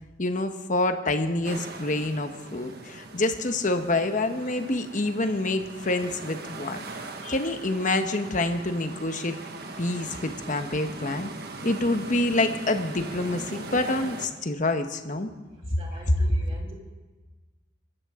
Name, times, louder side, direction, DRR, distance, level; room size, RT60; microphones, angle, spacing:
voice 1, 0.2-6.8 7.2-9.4 9.8-11.3 11.6-15.3, left 2 dB, 45° left, 7 dB, 1.1 m, -27 dB
sound 1, 1.4-14.3, right 3 dB, 60° right, 1.5 m, -40 dB
voice 2, 15.5-16.7, equal, 30° right, -1 dB, 2.9 m, -47 dB
24.0 x 13.5 x 3.7 m, 1.3 s
head